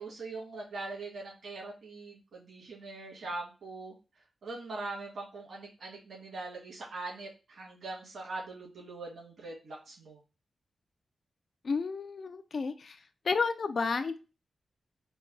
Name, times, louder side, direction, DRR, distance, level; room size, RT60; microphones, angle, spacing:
voice 1, 0.0-3.9 4.4-10.2, right 3 dB, 75° right, -4 dB, 1.9 m, -42 dB
voice 2, 11.6-13.0 13.2-14.2, left 4 dB, 60° left, 10 dB, 0.4 m, -31 dB
4.1 x 2.2 x 3.8 m, 0.32 s
cardioid pair, 80°, 0 cm